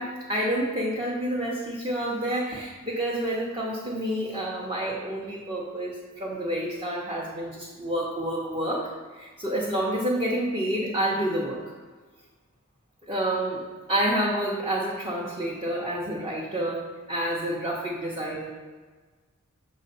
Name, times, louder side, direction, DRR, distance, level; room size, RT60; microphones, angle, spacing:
voice 1, 0.0-11.6 13.0-18.5, right 1 dB, 25° right, -5 dB, 0.8 m, -29 dB
6.6 x 3.2 x 5.4 m, 1.4 s
head